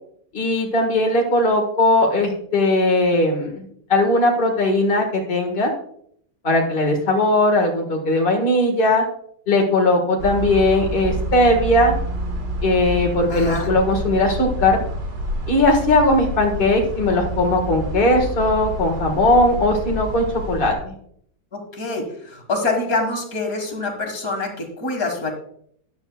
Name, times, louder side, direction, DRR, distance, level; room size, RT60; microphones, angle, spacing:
voice 1, 0.3-5.7 6.4-9.0 9.5-11.9 12.6-14.8 15.5-20.9, left 1 dB, 35° left, 1 dB, 1.6 m, -18 dB
sound 1, 10.2-20.7, right 1 dB, 90° right, 2.4 m, -28 dB
voice 2, 13.3-13.7 21.5-25.3, left 3 dB, 55° left, 3 dB, 2.1 m, -25 dB
13.0 x 10.5 x 2.3 m, 0.66 s
omnidirectional pair, 1.9 m